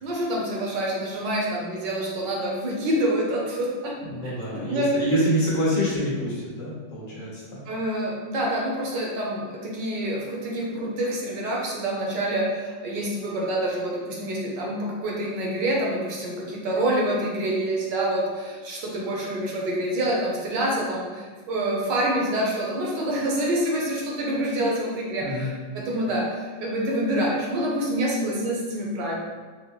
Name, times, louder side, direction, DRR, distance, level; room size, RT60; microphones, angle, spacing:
voice 1, 0.0-3.9 4.2-5.1 7.7-29.2, right 1 dB, 70° right, -3 dB, 1.4 m, -27 dB
voice 2, 4.0-7.6 25.2-25.6, equal, 40° left, -7 dB, 1.1 m, -26 dB
4.7 x 2.1 x 3.0 m, 1.5 s
omnidirectional pair, 2.1 m